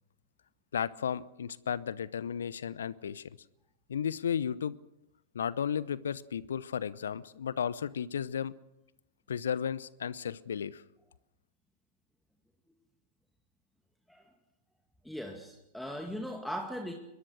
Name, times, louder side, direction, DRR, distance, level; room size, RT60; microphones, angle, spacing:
voice 1, 0.7-3.3 3.9-4.8 5.3-8.5 9.3-10.8, left 8 dB, 70° left, 20 dB, 0.8 m, -34 dB
voice 2, 15.0-16.9, equal, ahead, 4 dB, 2.1 m, -39 dB
22.5 x 21.5 x 6.4 m, 0.87 s
figure-of-eight pair, 100°, 0 cm